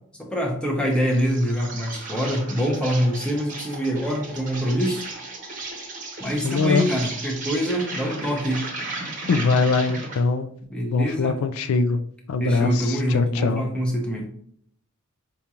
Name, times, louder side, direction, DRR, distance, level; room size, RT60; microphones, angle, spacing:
voice 1, 0.2-5.0 6.2-8.6 10.7-11.3 12.4-14.3, equal, 5° left, -1 dB, 0.7 m, -24 dB
Insect, 0.9-10.3, right 2 dB, 35° right, 0.8 m, -35 dB
voice 2, 6.4-6.9 9.3-10.5 10.9-12.0 12.3-13.6, left 4 dB, 70° left, 10 dB, 0.4 m, -22 dB
5.1 x 2.3 x 2.9 m, 0.64 s
head